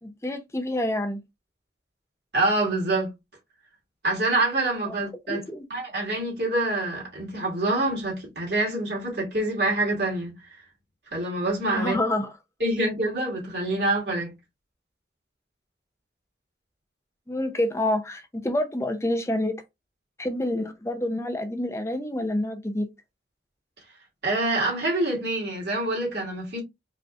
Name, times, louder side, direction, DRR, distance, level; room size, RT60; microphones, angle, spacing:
voice 1, 0.0-1.2 4.8-4.9 5.3-5.7 11.7-12.3 17.3-19.5 20.2-22.9, left 1 dB, 15° left, 0.6 m, -27 dB
voice 2, 2.3-3.1 4.0-5.4 5.7-10.3 11.1-12.0 12.6-14.3 24.2-26.6, right 2 dB, 70° right, 2.3 m, -26 dB
4.9 x 3.1 x 2.4 m
head